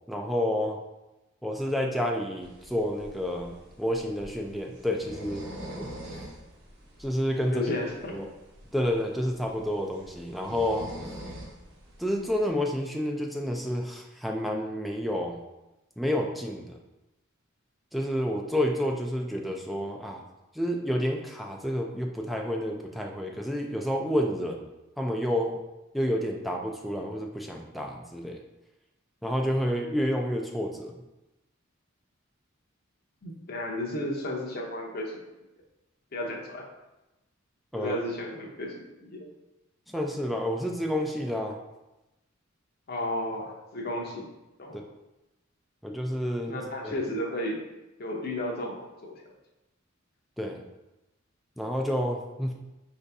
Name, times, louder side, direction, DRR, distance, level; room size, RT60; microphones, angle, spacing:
voice 1, 0.1-0.8 1.4-5.4 5.8-6.2 7.0-7.7 8.1-8.2 8.7-10.9 12.0-15.4 16.0-16.8 17.9-20.2 20.5-24.7 25.0-25.6 25.9-28.4 29.2-30.9 37.7-38.0 39.9-41.6 45.8-46.6 46.8-46.9 50.4-50.6 51.6-52.5, equal, ahead, 1 dB, 0.3 m, -29 dB
sound 1, 2.4-12.5, equal, 55° right, 0.9 m, -45 dB
voice 2, 7.5-8.1 33.2-35.2 36.1-36.6 37.7-39.3 42.9-44.3 44.6-44.8 46.5-47.6 48.0-49.1, left 1 dB, 50° left, -1 dB, 0.7 m, -33 dB
5.0 x 2.7 x 3.4 m, 0.99 s
head